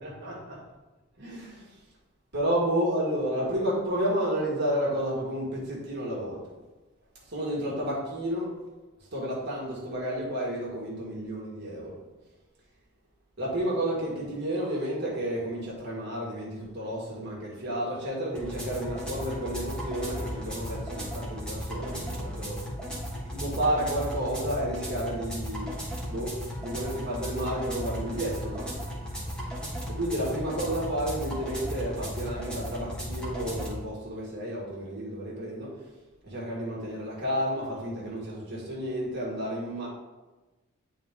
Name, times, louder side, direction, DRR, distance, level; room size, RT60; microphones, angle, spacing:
voice 1, 0.0-0.4 1.2-1.7 2.3-6.4 7.3-8.5 9.0-11.9 13.4-22.6 23.3-25.7 26.1-28.7 29.9-35.8 36.2-39.9, right 1 dB, 50° right, -4 dB, 1.8 m, -31 dB
sound 1, 18.3-33.7, equal, 5° left, 1.5 m, -35 dB
10.0 x 3.9 x 3.6 m, 1.2 s
head